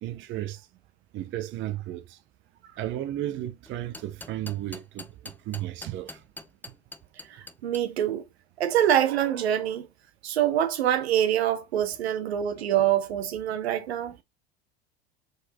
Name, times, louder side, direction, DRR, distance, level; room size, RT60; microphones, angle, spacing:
voice 1, 0.0-0.6 1.1-2.2 2.8-6.2, right 13 dB, 40° right, 0.7 m, -34 dB
sound 1, 3.7-7.8, left 2 dB, 5° left, 0.6 m, -43 dB
voice 2, 7.3-8.2 8.6-9.9 10.2-14.2, right 10 dB, 75° right, 1.1 m, -25 dB
4.7 x 4.5 x 2.3 m
hypercardioid pair, 75°, 32 cm